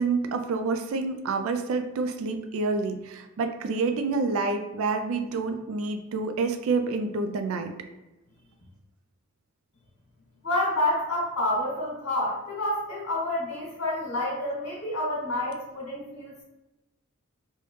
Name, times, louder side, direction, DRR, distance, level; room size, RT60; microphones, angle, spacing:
voice 1, 0.0-7.7, right 4 dB, 65° right, 7 dB, 0.3 m, -28 dB
voice 2, 10.4-16.4, left 1 dB, 65° left, -6 dB, 1.3 m, -28 dB
3.1 x 3.0 x 3.0 m, 1.0 s
head